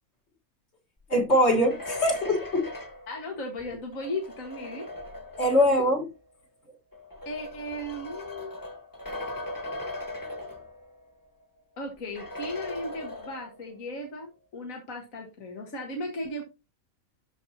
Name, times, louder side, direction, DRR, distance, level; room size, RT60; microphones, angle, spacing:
voice 1, 1.1-2.7 5.4-6.0, left 1 dB, 50° left, 2.0 m, -22 dB
sound 1, 1.3-6.0 6.9-11.1 11.4-11.5 12.2-13.7, left 2 dB, 15° left, 1.5 m, -39 dB
voice 2, 3.1-4.9 7.3-8.6 11.8-16.4, left 1 dB, 70° left, 2.0 m, -36 dB
13.0 x 4.3 x 2.8 m
omnidirectional pair, 1.5 m